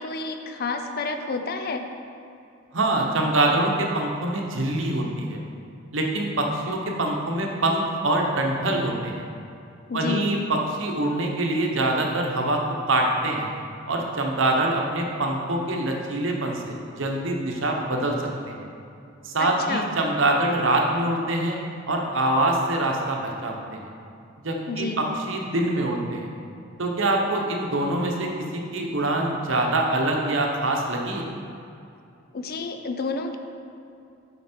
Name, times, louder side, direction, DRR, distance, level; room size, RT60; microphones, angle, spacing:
voice 1, 0.0-1.9 9.9-10.3 19.4-19.8 24.7-25.0 32.3-33.4, left 4 dB, 50° left, 6 dB, 0.5 m, -30 dB
voice 2, 2.7-5.4 5.9-9.2 9.9-12.6 12.9-13.5 13.9-18.5 19.2-21.6 21.9-23.8 24.4-26.3 26.8-31.2, right 2 dB, 70° right, 1 dB, 1.0 m, -24 dB
7.1 x 5.9 x 4.4 m, 2.6 s
head